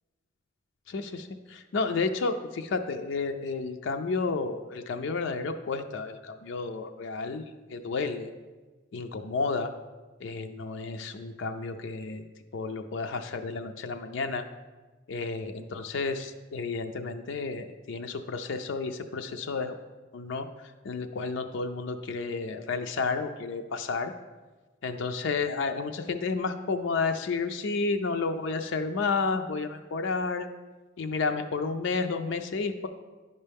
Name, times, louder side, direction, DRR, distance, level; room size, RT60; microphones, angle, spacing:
voice 1, 0.9-8.3 8.9-9.7 10.2-12.2 12.5-14.4 15.1-19.8 20.1-24.1 24.8-30.5 31.0-32.9, left 4 dB, 65° left, 6 dB, 0.4 m, -31 dB
10.5 x 5.4 x 3.5 m, 1.3 s
head